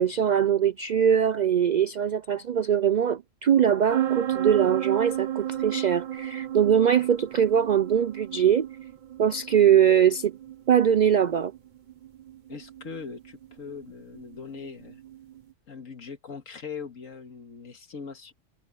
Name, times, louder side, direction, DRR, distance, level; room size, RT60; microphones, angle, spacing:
voice 1, 0.0-8.7 9.2-10.3 10.7-11.5, right 8 dB, 80° right, 0.4 m, -22 dB
sound 1, 3.9-15.4, right 11 dB, 45° right, 0.7 m, -33 dB
voice 2, 12.5-15.0 15.7-18.3, left 5 dB, 75° left, 2.2 m, -40 dB
omnidirectional pair, 1.4 m